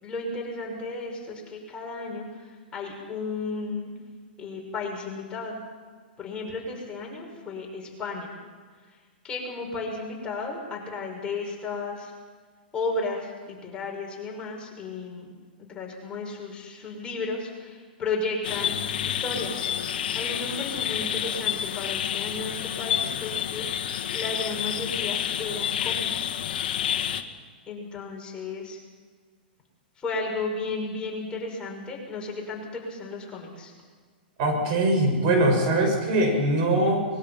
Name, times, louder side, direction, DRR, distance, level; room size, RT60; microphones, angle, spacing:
voice 1, 0.0-3.9 4.4-5.6 6.2-8.3 9.2-12.1 12.7-15.3 15.7-18.8 19.0-19.7 20.1-26.4 27.7-28.8 30.0-33.7, left 3 dB, 20° left, -1 dB, 6.1 m, -34 dB
sound 1, 18.4-27.2, left 9 dB, 65° left, 1.7 m, -29 dB
voice 2, 34.4-37.1, right 1 dB, 50° right, 3 dB, 6.4 m, -22 dB
24.0 x 21.5 x 5.8 m, 1.5 s
hypercardioid pair, 120°, 5 cm